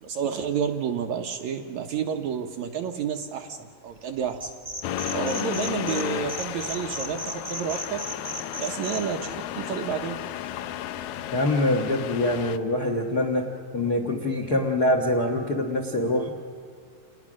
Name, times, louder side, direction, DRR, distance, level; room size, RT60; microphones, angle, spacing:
voice 1, 0.0-3.6 3.8-4.5 5.1-8.1 8.6-10.2, right 7 dB, 70° right, 4 dB, 1.9 m, -30 dB
sound 1, 4.3-6.0 6.3-9.0, right 1 dB, 25° right, 0.8 m, -34 dB
Accelerating revving vroom, 4.8-12.6, left 11 dB, 80° left, 2.4 m, -33 dB
voice 2, 11.3-13.5 13.7-16.3, left 1 dB, 55° left, 3 dB, 1.1 m, -24 dB
28.5 x 19.5 x 6.3 m, 2.3 s
omnidirectional pair, 4.0 m